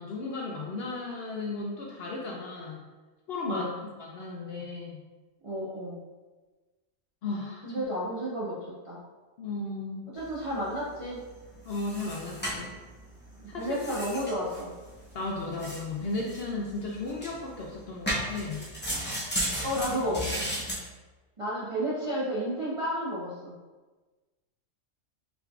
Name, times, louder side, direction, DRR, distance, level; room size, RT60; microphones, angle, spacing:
voice 1, 0.0-2.8 3.3-3.7 4.0-5.0 7.2-7.8 9.4-10.1 11.7-12.7 13.5-13.7 15.1-18.6, left 3 dB, 65° left, -2 dB, 0.7 m, -35 dB
voice 2, 3.4-3.8 5.4-6.0 7.6-9.0 10.1-11.3 13.6-14.8 19.6-20.3 21.4-23.5, equal, 40° right, -8 dB, 0.5 m, -32 dB
sound 1, 10.2-20.8, equal, 10° left, 0.5 m, -36 dB
4.0 x 3.5 x 2.3 m, 1.3 s
omnidirectional pair, 1.4 m